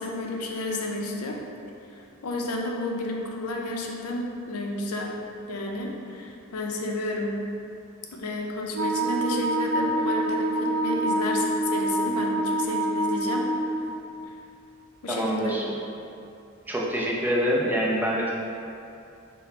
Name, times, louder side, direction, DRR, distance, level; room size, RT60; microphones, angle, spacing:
voice 1, 0.0-1.4 1.9-5.2 5.5-7.5 8.1-13.5 15.0-15.7, left 2 dB, 80° left, 0 dB, 0.5 m, -31 dB
Wind instrument woodwind instrument, 8.7-13.9, right 1 dB, 65° right, 0.5 m, -26 dB
voice 2, 15.1-15.8 16.7-18.3, equal, 10° right, -4 dB, 0.3 m, -25 dB
4.2 x 2.1 x 4.0 m, 2.6 s
head